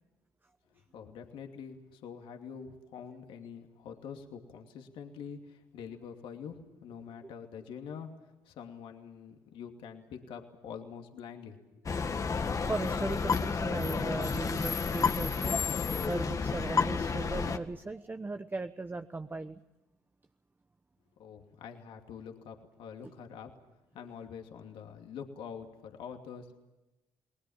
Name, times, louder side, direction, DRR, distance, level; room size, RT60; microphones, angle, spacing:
voice 1, 0.7-8.1 8.4-11.8 21.2-23.6 23.9-26.6, left 7 dB, 70° left, 4 dB, 2.7 m, -45 dB
sound 1, 11.9-17.6, left 5 dB, 35° left, 1.7 m, -31 dB
voice 2, 12.7-15.6 16.1-19.6 23.0-23.1, right 3 dB, 20° right, 8 dB, 1.1 m, -37 dB
29.5 x 20.0 x 7.3 m, 0.99 s
supercardioid pair, 60°, 9 cm